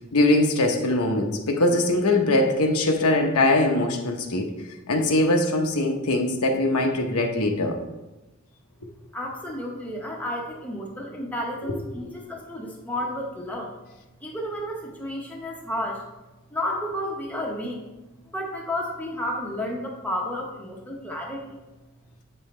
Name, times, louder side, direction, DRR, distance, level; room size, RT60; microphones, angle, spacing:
voice 1, 0.1-4.5 4.9-7.8 11.6-11.7, left 2 dB, 90° left, 3 dB, 0.9 m, -22 dB
voice 2, 9.1-13.7 14.2-16.1 16.5-17.8 18.3-21.5, left 1 dB, 5° left, -1 dB, 0.9 m, -31 dB
8.1 x 5.5 x 3.2 m, 1.1 s
head